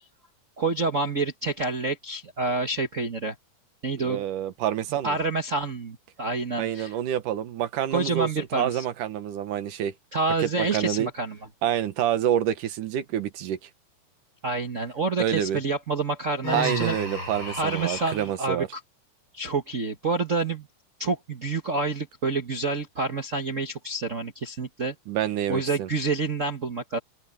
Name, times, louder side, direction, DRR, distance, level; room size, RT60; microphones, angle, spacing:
voice 1, 0.6-3.3 3.8-4.2 5.0-6.9 7.9-8.8 10.1-11.4 14.4-17.0 17.6-18.8 19.3-20.7 21.0-24.9 25.5-27.0, right 3 dB, 70° right, 0.7 m, -28 dB
voice 2, 4.0-5.2 6.6-9.9 10.4-11.1 11.6-13.6 15.2-15.6 16.5-18.7 25.1-25.9, right 10 dB, 85° right, 2.9 m, -27 dB
Human voice, 16.4-18.3, left 1 dB, 40° left, 5.7 m, -33 dB
open air
omnidirectional pair, 3.6 m